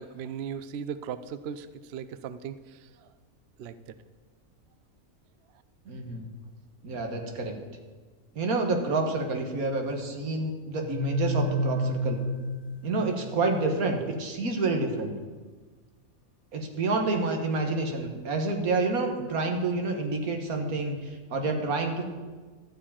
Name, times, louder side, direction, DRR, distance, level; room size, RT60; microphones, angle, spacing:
voice 1, 0.0-2.9 3.6-3.8, right 7 dB, 65° right, 13 dB, 0.6 m, -37 dB
voice 2, 5.9-6.3 6.8-7.5 8.4-12.2 12.8-15.1 16.5-22.0, right 3 dB, 80° right, 4 dB, 1.8 m, -28 dB
sound 1, 10.8-13.6, equal, 35° left, 1.6 m, -30 dB
12.5 x 4.8 x 8.6 m, 1.4 s
omnidirectional pair, 1.5 m